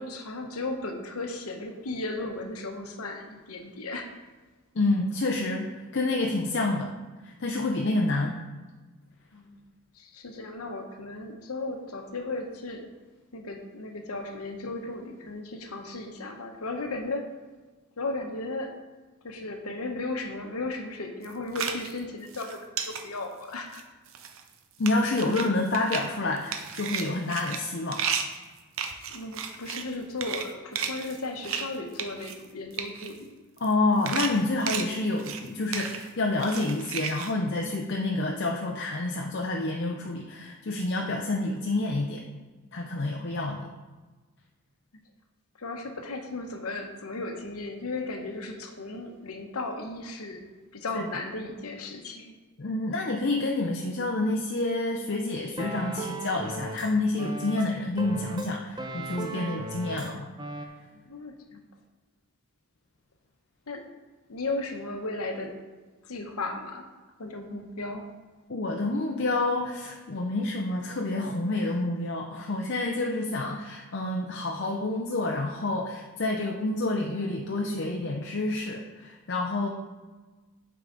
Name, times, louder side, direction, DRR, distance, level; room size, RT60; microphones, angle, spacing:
voice 1, 0.0-4.1 9.3-9.6 9.9-12.9 13.3-17.3 18.0-18.7 19.2-23.8 29.1-33.3 43.0-43.4 45.6-50.4 50.7-52.3 60.9-61.6 63.7-63.9 64.3-65.6 66.0-66.9 67.2-68.1, left 2 dB, 85° left, 4 dB, 0.9 m, -35 dB
voice 2, 4.7-6.9 7.2-8.4 24.8-28.0 33.6-42.2 42.7-43.7 50.9-51.1 52.6-60.3 68.5-79.7, left 2 dB, 50° left, 0 dB, 0.6 m, -28 dB
sound 1, 21.2-22.0 22.3-23.0 23.5-23.8 24.1-24.5 24.9-25.5 25.7-26.1 26.4-29.9 30.2-30.5 30.8-31.7 31.9-32.5 32.7-33.1 33.6-33.7 34.0-35.5 35.7-36.1 36.4-37.3, right 7 dB, 65° right, 0.7 m, -33 dB
sound 2, 55.6-56.9 57.2-60.1 60.4-60.7, right 2 dB, 20° right, 0.6 m, -36 dB
8.8 x 4.8 x 3.9 m, 1.3 s
head